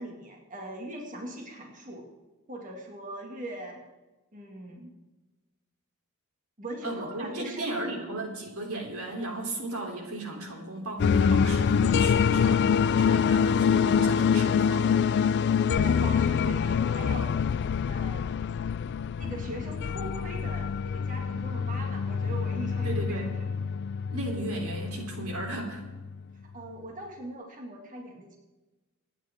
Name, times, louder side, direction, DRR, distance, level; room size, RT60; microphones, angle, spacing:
voice 1, 0.0-2.0 2.5-3.8 4.3-4.9 6.6-8.0 15.7-17.3 17.9-18.3 19.2-23.5 26.5-28.4, right 1 dB, 40° right, 1 dB, 2.1 m, -40 dB
voice 2, 6.8-14.9 22.8-23.3 24.1-25.8, right 2 dB, 85° right, 1 dB, 3.5 m, -35 dB
sound 1, 11.0-26.1, left 6 dB, 50° left, 0.3 m, -25 dB
26.0 x 10.0 x 3.7 m, 1.1 s
head